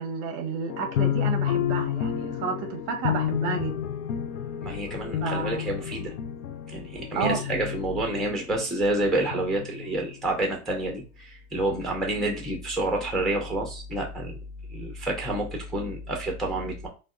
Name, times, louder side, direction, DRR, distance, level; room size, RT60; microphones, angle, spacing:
voice 1, 0.0-3.8 5.2-5.6 7.1-7.5, right 5 dB, 40° right, 0.6 m, -31 dB
sound 1, 0.7-8.7 9.3-10.5, left 10 dB, 65° left, 0.5 m, -30 dB
voice 2, 4.6-6.1 6.7-14.4 14.7-16.9, right 1 dB, ahead, 0.5 m, -29 dB
3.4 x 2.2 x 2.3 m
hypercardioid pair, 95°, 41 cm